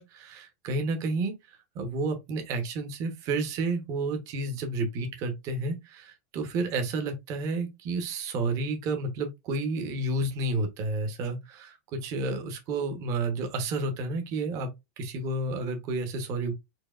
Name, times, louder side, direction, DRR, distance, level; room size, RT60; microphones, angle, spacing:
voice 1, 0.0-1.3 1.7-14.7 15.0-16.5, right 2 dB, 35° right, 1.0 m, -31 dB
4.5 x 2.8 x 2.5 m
supercardioid pair, 160°, 9 cm